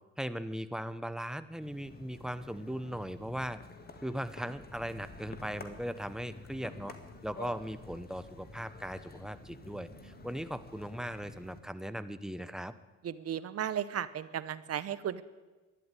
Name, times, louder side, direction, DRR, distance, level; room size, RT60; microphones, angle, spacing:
voice 1, 0.2-3.6 4.0-7.0 7.2-12.7, equal, ahead, 13 dB, 0.8 m, -38 dB
sound 1, 0.6-12.2, equal, 60° left, 7.3 m, -59 dB
sound 2, 1.6-11.6, left 3 dB, 30° left, 2.0 m, -50 dB
voice 2, 13.0-15.2, right 9 dB, 55° right, 16 dB, 0.9 m, -35 dB
12.5 x 11.0 x 9.7 m, 1.2 s
cardioid pair, 90°, 30 cm